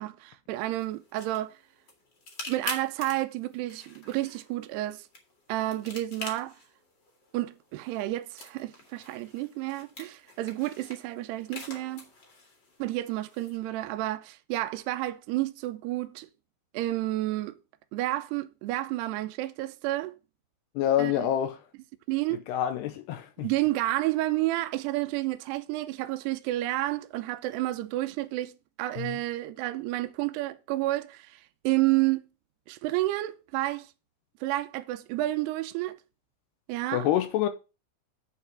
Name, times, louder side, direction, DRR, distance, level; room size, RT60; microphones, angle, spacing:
voice 1, 0.0-1.6 2.5-5.1 5.5-6.6 7.3-12.1 12.8-16.3 16.7-17.6 17.9-20.1 21.0-21.3 22.1-22.4 23.4-32.2 32.7-33.9 34.4-36.0 36.7-37.1, right 17 dB, 80° right, 2.6 m, -30 dB
sound 1, 0.6-13.6, left 3 dB, 35° left, 2.0 m, -46 dB
voice 2, 20.8-21.6 22.5-23.5 29.0-29.2 36.9-37.5, left 11 dB, 80° left, 2.8 m, -27 dB
8.5 x 4.8 x 7.5 m
omnidirectional pair, 5.0 m